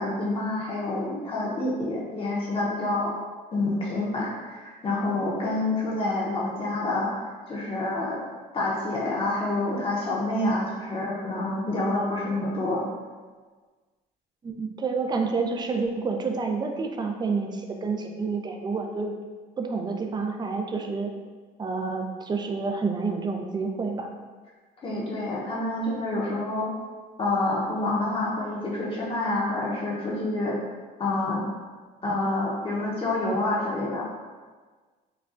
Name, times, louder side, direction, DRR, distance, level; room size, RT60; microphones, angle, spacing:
voice 1, 0.0-3.1 3.5-8.2 8.5-12.8 24.8-26.7 27.2-30.6 31.0-31.4 32.0-34.0, left 2 dB, 35° left, -5 dB, 0.8 m, -27 dB
voice 2, 14.4-19.1 19.6-21.1 21.6-24.1, right 4 dB, 25° right, 3 dB, 0.4 m, -29 dB
5.0 x 2.3 x 2.6 m, 1.4 s
cardioid pair, 110°, 17 cm